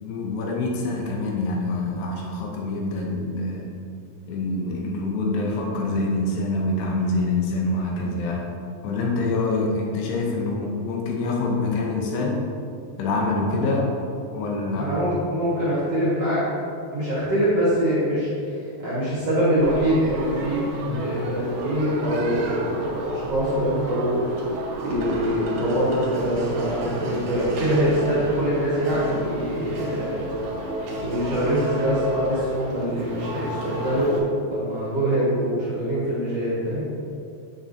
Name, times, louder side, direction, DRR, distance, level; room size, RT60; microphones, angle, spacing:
voice 1, 0.0-3.7 4.3-8.5 8.8-12.4 13.0-13.9 14.3-15.0 20.9-21.1, left 2 dB, 85° left, 0 dB, 2.8 m, -25 dB
voice 2, 14.7-16.5 16.9-24.2 24.8-30.2 31.0-34.2 34.5-36.8, equal, 55° right, -10 dB, 1.8 m, -24 dB
sound 1, 19.6-34.2, right 1 dB, 70° right, 2.3 m, -31 dB
7.2 x 7.0 x 2.7 m, 2.5 s
omnidirectional pair, 4.9 m